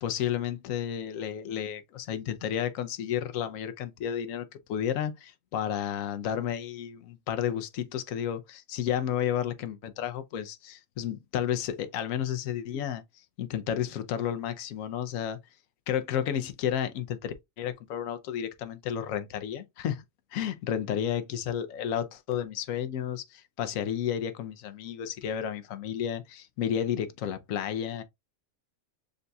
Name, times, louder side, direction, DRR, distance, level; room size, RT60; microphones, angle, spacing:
voice 1, 0.0-13.0 13.4-15.4 15.9-20.0 20.3-28.0, left 9 dB, 80° left, 1.0 m, -32 dB
6.6 x 2.7 x 2.2 m
omnidirectional pair, 1.4 m